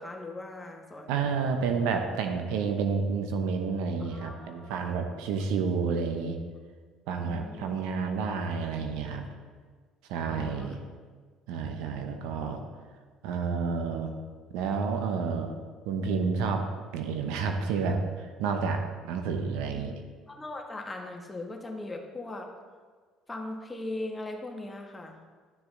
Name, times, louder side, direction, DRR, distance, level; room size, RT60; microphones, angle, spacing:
voice 1, 0.0-1.2 4.1-4.9 7.2-7.8 10.3-10.7 19.6-19.8 20.3-22.5 23.3-25.2, left 2 dB, 20° left, 2 dB, 1.5 m, -39 dB
voice 2, 1.1-6.4 7.1-9.3 10.1-10.8 11.5-12.6 13.2-14.1 14.5-15.5 15.8-16.7 16.9-20.0, right 5 dB, 75° right, 5 dB, 0.8 m, -30 dB
11.5 x 6.8 x 3.8 m, 1.5 s
hypercardioid pair, 60°, 0 cm